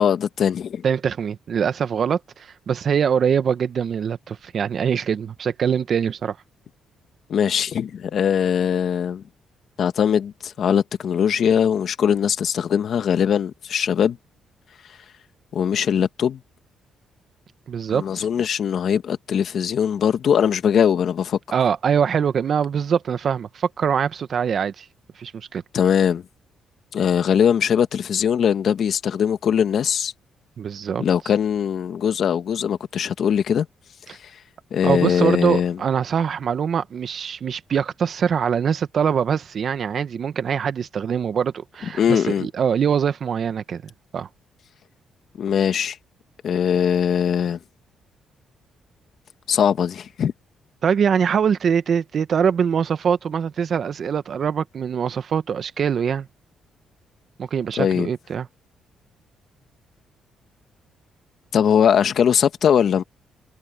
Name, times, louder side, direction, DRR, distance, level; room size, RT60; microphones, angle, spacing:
voice 1, 0.0-0.8 7.3-9.2 9.8-14.2 15.5-16.4 17.9-21.4 25.7-26.2 26.9-30.1 31.0-33.7 34.1-34.2 34.7-35.8 42.0-42.5 45.4-46.0 46.4-47.6 49.5-50.3 57.8-58.1 61.5-63.0, left 8 dB, 60° left, 1.7 m, -21 dB
voice 2, 0.8-6.4 17.7-18.3 21.5-24.8 25.2-25.6 30.6-31.0 34.8-43.8 44.1-44.3 50.8-56.3 57.4-58.5, right 7 dB, 55° right, 1.2 m, -23 dB
cardioid pair, 90°, 0 cm